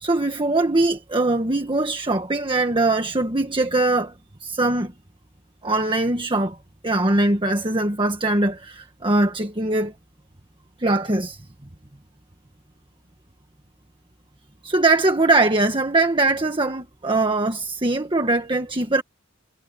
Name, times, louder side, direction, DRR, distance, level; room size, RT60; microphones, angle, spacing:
voice 1, 0.0-4.1 4.4-4.9 5.6-6.6 6.8-9.9 10.8-11.4 14.6-19.0, right 2 dB, 25° right, 1.5 m, -21 dB
head